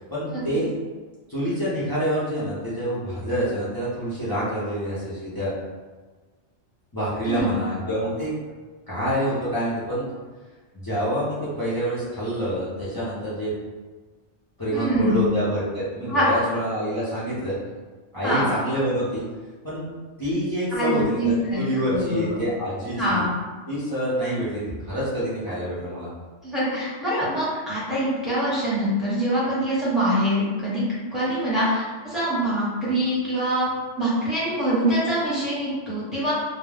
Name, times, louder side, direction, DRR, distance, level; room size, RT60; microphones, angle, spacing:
voice 1, 0.1-0.7 1.3-5.5 6.9-8.3 8.9-10.1 10.7-13.5 14.6-17.5 18.1-19.2 19.6-19.9 20.2-23.2 23.7-26.1, equal, 25° left, -11 dB, 0.6 m, -27 dB
voice 2, 7.2-7.6 14.7-15.3 16.1-16.3 18.2-18.5 20.7-22.4 22.9-23.3 26.4-30.8 31.1-33.7 34.0-36.3, right 1 dB, ahead, -10 dB, 0.9 m, -24 dB
2.3 x 2.2 x 3.4 m, 1.4 s
omnidirectional pair, 1.3 m